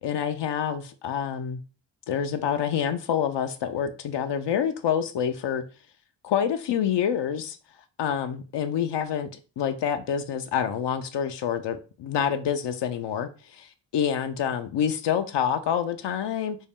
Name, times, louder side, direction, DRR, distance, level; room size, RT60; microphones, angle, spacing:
voice 1, 0.0-1.6 2.1-5.6 6.2-7.6 8.0-9.3 9.6-16.6, left 8 dB, 65° left, 0.6 m, -27 dB
5.3 x 2.1 x 3.6 m
supercardioid pair, 55°, 46 cm